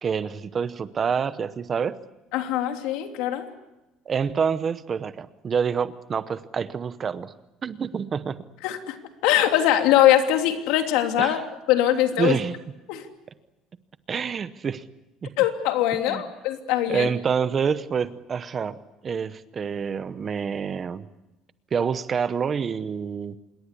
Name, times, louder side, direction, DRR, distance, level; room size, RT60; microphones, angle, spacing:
voice 1, 0.0-2.0 4.1-7.3 7.6-8.4 11.2-11.4 12.2-12.5 14.1-14.8 15.2-15.3 16.1-16.2 16.9-18.8 19.0-21.1 21.7-23.3, right 6 dB, 25° right, 14 dB, 0.8 m, -27 dB
voice 2, 2.3-3.5 8.6-9.0 9.2-11.4 11.7-12.4 12.9-13.0 15.4-17.1, left 12 dB, 80° left, 5 dB, 3.0 m, -22 dB
27.0 x 22.0 x 8.3 m, 1.0 s
cardioid pair, 180°, 0 cm